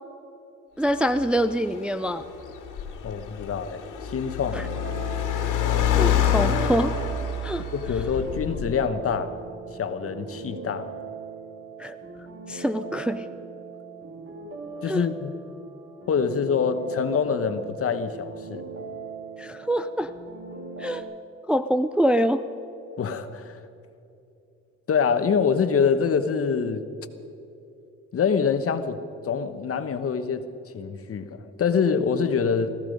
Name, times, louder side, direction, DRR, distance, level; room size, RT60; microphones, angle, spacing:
voice 1, 0.8-2.2 4.5-4.7 5.4-5.5 6.0-6.9 7.4-7.7 11.8-12.0 12.5-13.3 14.9-15.0 19.4-20.1 20.8-21.0 21.5-22.5, equal, 5° right, 9 dB, 0.4 m, -25 dB
Car, 0.9-8.9, left 8 dB, 85° left, 2.1 m, -27 dB
voice 2, 3.0-4.7 7.7-9.4 9.7-10.9 14.8-15.3 16.1-18.6 23.0-23.6 24.9-26.8 28.1-29.0 29.2-30.5 30.7-32.7, left 6 dB, 50° left, 9 dB, 1.1 m, -25 dB
sound 1, 4.4-21.0, right 4 dB, 50° right, 2.9 m, -39 dB
18.5 x 15.0 x 5.2 m, 2.8 s
cardioid pair, 90°, 30 cm